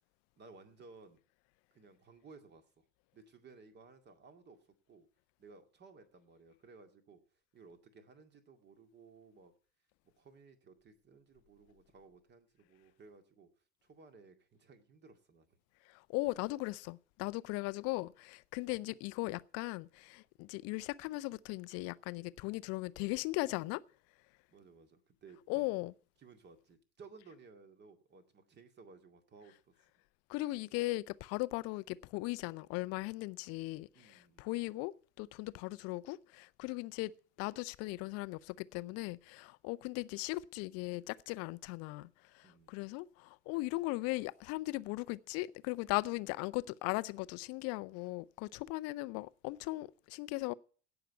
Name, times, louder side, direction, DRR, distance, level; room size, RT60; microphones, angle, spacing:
voice 1, 0.4-1.2 1.7-2.9 3.1-4.6 4.9-5.1 5.4-7.2 7.5-9.5 10.2-13.5 13.8-15.6 24.5-25.7 26.2-29.8 33.9-34.5 36.8-36.9 42.4-42.7, right 4 dB, 30° right, 2.2 m, -58 dB
voice 2, 15.9-23.8 25.5-25.9 30.3-37.1 37.4-42.1 42.3-50.5, left 21 dB, 45° left, 0.6 m, -38 dB
16.5 x 5.9 x 8.2 m
figure-of-eight pair, 70°, 34 cm